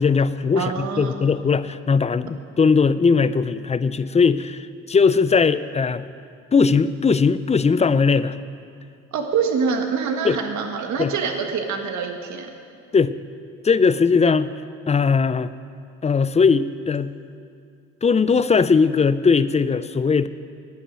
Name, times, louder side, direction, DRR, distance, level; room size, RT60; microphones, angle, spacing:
voice 1, 0.0-6.0 6.5-8.3 10.2-10.4 11.0-11.1 12.9-13.1 13.6-14.5 14.9-15.5 16.0-17.1 18.0-20.3, left 5 dB, 20° left, 14 dB, 0.4 m, -19 dB
voice 2, 0.5-1.2 9.1-12.5, right 5 dB, 70° right, 4 dB, 1.6 m, -25 dB
11.5 x 8.3 x 8.9 m, 2.3 s
cardioid pair, 90°, 30 cm